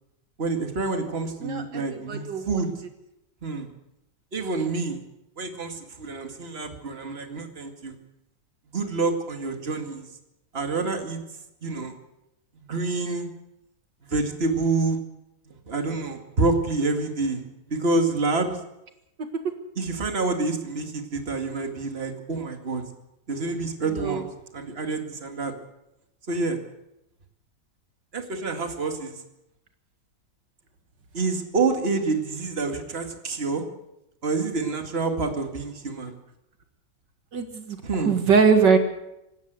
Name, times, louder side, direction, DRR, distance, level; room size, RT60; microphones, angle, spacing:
voice 1, 0.4-2.8 3.4-3.7 4.3-5.0 5.4-7.9 8.7-10.1 10.5-11.2 11.6-11.9 12.6-13.3 14.0-15.0 15.5-18.6 19.8-22.8 23.3-24.3 24.5-25.5 26.3-26.6 28.1-29.2 31.1-33.6 34.2-36.1 37.8-38.2, right 3 dB, 35° right, 5 dB, 2.4 m, -27 dB
voice 2, 1.4-2.6 24.0-24.2 37.3-37.8 38.0-38.8, right 5 dB, 80° right, 6 dB, 2.4 m, -21 dB
25.5 x 13.0 x 8.1 m, 0.87 s
omnidirectional pair, 1.9 m